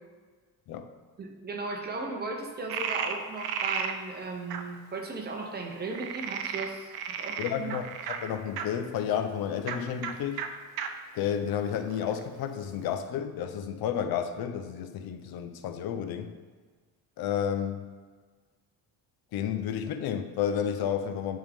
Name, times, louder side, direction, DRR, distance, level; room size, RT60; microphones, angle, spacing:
voice 1, 1.2-7.7, right 3 dB, 25° right, 1 dB, 0.8 m, -36 dB
Frog, 2.7-3.9 4.5-4.6 5.9-8.7 9.6-9.8 10.0-10.1 10.4-10.5 10.8-10.9 11.5-12.2, right 8 dB, 85° right, 0.6 m, -33 dB
voice 2, 7.4-10.5 11.1-16.3 17.2-17.9 19.3-21.4, left 8 dB, 80° left, 8 dB, 0.6 m, -31 dB
9.8 x 3.7 x 3.5 m, 1.5 s
cardioid pair, 160°, 36 cm